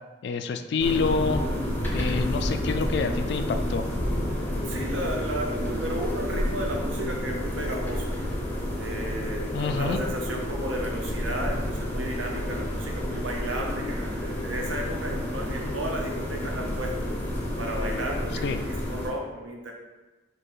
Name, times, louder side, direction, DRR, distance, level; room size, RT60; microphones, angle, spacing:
voice 1, 0.2-1.4 1.9-3.9 9.5-10.0 18.4-18.6, left 4 dB, 55° left, 8 dB, 0.3 m, -27 dB
sound 1, 0.8-19.1, left 1 dB, 10° left, 0.6 m, -30 dB
voice 2, 4.7-8.1 8.8-17.1 17.6-19.7, right 1 dB, 75° right, 1 dB, 0.8 m, -33 dB
3.9 x 2.8 x 4.5 m, 1.2 s
head